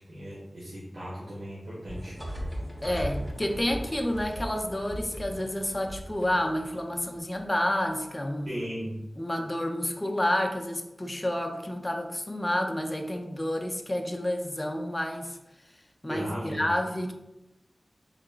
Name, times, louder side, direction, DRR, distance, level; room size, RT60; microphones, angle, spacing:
voice 1, 0.0-2.1 8.4-9.0 16.1-16.7, equal, 75° right, -8 dB, 1.0 m, -37 dB
sound 1, 1.9-7.9, equal, 15° right, 0.8 m, -38 dB
voice 2, 2.8-8.6 9.2-15.4 16.0-17.1, left 1 dB, 20° left, 3 dB, 0.4 m, -29 dB
3.9 x 3.5 x 2.3 m, 0.91 s
wide cardioid pair, 80°, 0 cm